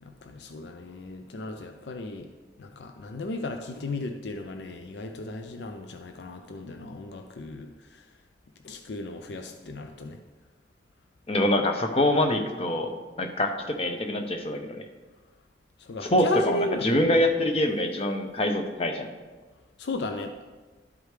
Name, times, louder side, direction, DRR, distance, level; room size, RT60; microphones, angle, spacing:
voice 1, 0.0-2.3 2.6-8.0 8.6-10.2 15.8-17.1 19.8-20.3, left 2 dB, 75° left, 6 dB, 0.5 m, -35 dB
voice 2, 11.3-12.9 13.2-14.9 16.0-19.1, left 1 dB, 35° left, 5 dB, 0.7 m, -25 dB
12.0 x 4.9 x 3.3 m, 1.3 s
head